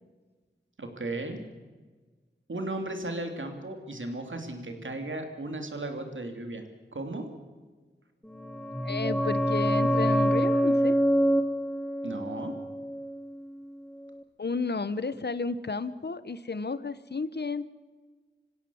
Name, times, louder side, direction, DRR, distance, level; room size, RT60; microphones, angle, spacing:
voice 1, 0.8-1.4 2.5-6.6 6.9-7.3 12.0-12.5, right 2 dB, 90° right, 4 dB, 3.0 m, -35 dB
sound 1, 8.3-13.8 14.0-14.1, equal, 5° left, 1.1 m, -26 dB
voice 2, 8.8-11.0 14.4-17.7, left 4 dB, 60° left, 14 dB, 1.0 m, -32 dB
27.0 x 16.5 x 7.1 m, 1.3 s
wide cardioid pair, 50°, 19 cm